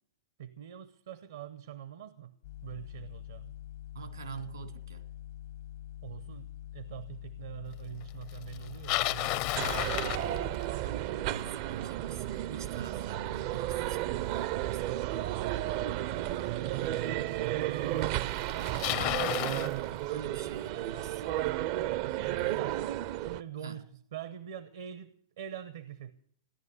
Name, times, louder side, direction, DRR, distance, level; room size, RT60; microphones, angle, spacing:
voice 1, 0.4-2.3 2.6-3.5 6.0-6.5 6.7-9.8 16.1-18.1 22.0-23.8 24.1-26.1, right 9 dB, 65° right, 0.8 m, -44 dB
sound 1, 2.4-10.6, left 14 dB, 65° left, 0.9 m, -45 dB
voice 2, 3.9-5.0 10.8-15.1 19.0-21.2 22.4-22.7 23.6-23.9, right 6 dB, 80° right, 2.2 m, -46 dB
Bicycle, 8.5-10.9 15.9-16.0 16.9-17.0 18.0-18.1 18.3-19.7, left 15 dB, 45° left, 0.6 m, -32 dB
sound 2, 9.6-23.4, right 14 dB, 45° right, 0.5 m, -33 dB
16.5 x 11.0 x 7.0 m
figure-of-eight pair, 110°, 2 cm